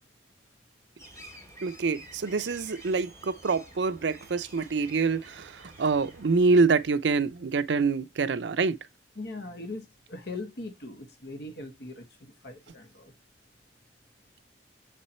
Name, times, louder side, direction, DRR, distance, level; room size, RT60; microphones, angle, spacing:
sound 1, 1.0-6.7, right 1 dB, 15° left, 1.9 m, -50 dB
voice 1, 1.6-8.8, right 4 dB, 75° right, 0.5 m, -26 dB
voice 2, 9.2-13.1, left 2 dB, 65° left, 1.1 m, -40 dB
7.3 x 4.3 x 4.2 m
head